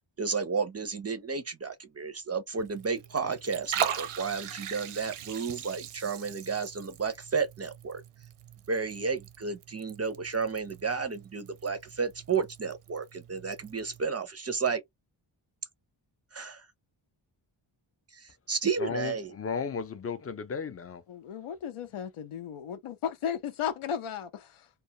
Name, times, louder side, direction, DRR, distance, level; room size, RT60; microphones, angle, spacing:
voice 1, 0.0-8.0 8.7-14.8 16.3-16.7 18.1-19.4, right 5 dB, 35° right, 0.4 m, -32 dB
Liquid, 2.6-14.0, right 9 dB, 90° right, 0.6 m, -40 dB
voice 2, 18.8-21.0, left 5 dB, 30° left, 0.4 m, -34 dB
voice 3, 21.1-24.7, left 8 dB, 80° left, 0.6 m, -35 dB
2.3 x 2.2 x 2.7 m
wide cardioid pair, 110°, 49 cm